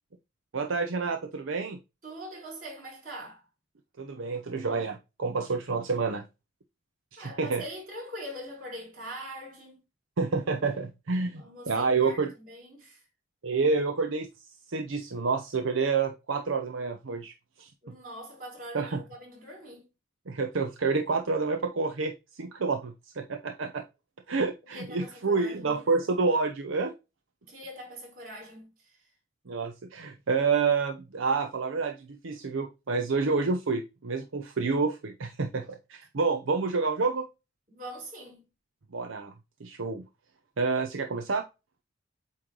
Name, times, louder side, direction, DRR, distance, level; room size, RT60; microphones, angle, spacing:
voice 1, 0.5-1.8 4.0-6.2 7.1-7.6 10.2-12.3 13.4-14.3 14.7-17.3 17.6-17.7 18.7-19.0 20.3-23.8 24.3-26.9 29.5-37.3 38.9-39.3 39.6-40.0 40.6-41.4, right 4 dB, 75° right, 0.7 m, -28 dB
voice 2, 2.0-3.4 7.2-9.8 11.4-13.0 17.8-19.9 24.6-25.8 27.4-29.1 37.7-38.5, equal, 45° right, 4.1 m, -43 dB
8.3 x 3.2 x 3.8 m
head